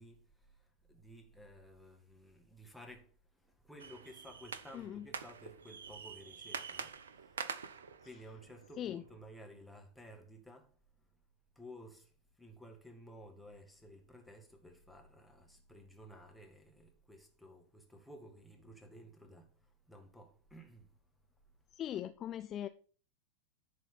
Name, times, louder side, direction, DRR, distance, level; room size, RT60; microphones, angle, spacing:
voice 1, 0.0-7.6 8.0-10.8 11.0-11.2 11.6-21.0, equal, ahead, 1.8 m, -55 dB
sound 1, 3.8-9.3, right 6 dB, 65° right, 0.7 m, -46 dB
voice 2, 4.7-5.0 8.8-9.0 21.8-22.7, left 11 dB, 30° left, 0.4 m, -40 dB
11.0 x 4.1 x 5.6 m
figure-of-eight pair, 90°, 0 cm